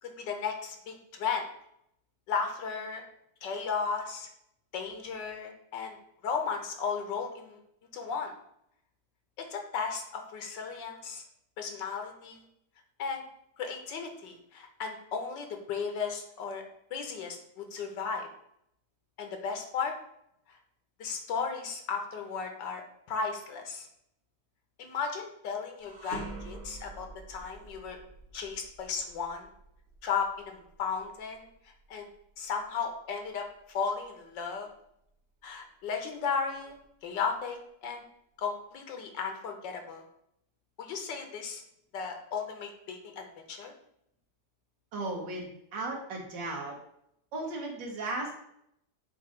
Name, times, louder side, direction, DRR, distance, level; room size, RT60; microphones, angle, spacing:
voice 1, 0.0-1.5 2.3-3.0 3.4-4.3 4.7-6.0 6.2-7.6 7.9-8.3 9.4-11.2 11.6-12.4 13.0-13.2 13.6-16.6 16.9-18.3 19.2-19.9 20.5-20.6 21.0-22.8 23.1-23.9 24.8-28.0 28.3-29.5 30.0-31.5 31.9-32.1 32.4-34.7 35.4-36.8 37.0-38.0 38.4-40.0 40.8-41.6 41.9-43.7, left 5 dB, 85° left, 4 dB, 1.6 m, -35 dB
sound 1, 25.8-35.0 35.5-35.6 36.5-37.4, right 3 dB, 40° right, 1.1 m, -48 dB
voice 2, 44.9-46.8 47.3-48.3, right 2 dB, 85° right, 0 dB, 1.9 m, -36 dB
7.1 x 2.7 x 4.9 m, 0.74 s
omnidirectional pair, 1.9 m